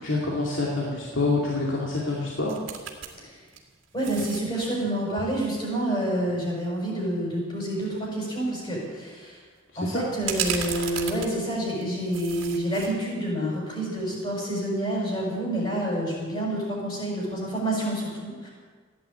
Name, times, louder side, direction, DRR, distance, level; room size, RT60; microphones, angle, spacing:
voice 1, 0.0-2.6 9.7-10.0, left 2 dB, 70° left, -4 dB, 2.4 m, -27 dB
sound 1, 2.5-3.1 3.5-4.7 7.3-7.4 7.9-8.1 10.2-11.8 12.1-12.9 13.3-13.4, right 7 dB, 70° right, 2.4 m, -33 dB
voice 2, 3.9-9.4 9.8-18.5, right 1 dB, 25° left, -4 dB, 6.1 m, -28 dB
16.0 x 10.5 x 8.7 m, 1.6 s
head